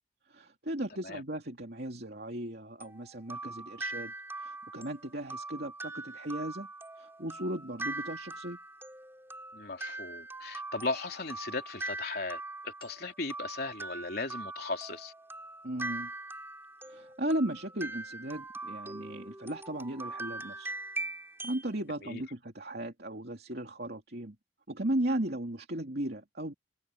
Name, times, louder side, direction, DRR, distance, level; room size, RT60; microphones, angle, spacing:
voice 1, 0.3-6.7 7.0-8.6 15.6-16.1 16.8-20.7 21.4-24.4 24.7-26.5, right 1 dB, 60° right, 3.0 m, -36 dB
sound 1, 2.8-21.7, right 2 dB, 15° right, 3.5 m, -42 dB
voice 2, 9.5-15.1 22.0-22.2, left 3 dB, 60° left, 3.5 m, -37 dB
head